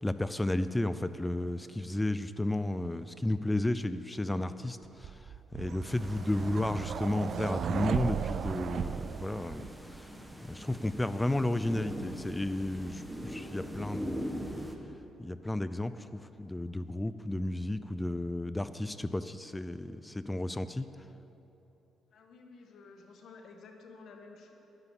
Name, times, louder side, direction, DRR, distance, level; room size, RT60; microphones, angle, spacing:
voice 1, 0.0-5.1 5.5-9.7 10.0-10.1 10.5-14.5 15.2-20.9, left 1 dB, 10° left, 12 dB, 0.5 m, -33 dB
sound 1, 5.0-10.0, right 7 dB, 60° right, 0.3 m, -35 dB
sound 2, 5.9-14.8, equal, 5° right, 1.2 m, -42 dB
voice 2, 22.1-24.5, left 4 dB, 65° left, 3 dB, 1.6 m, -52 dB
11.5 x 9.9 x 7.1 m, 3.0 s
cardioid pair, 90°, 0 cm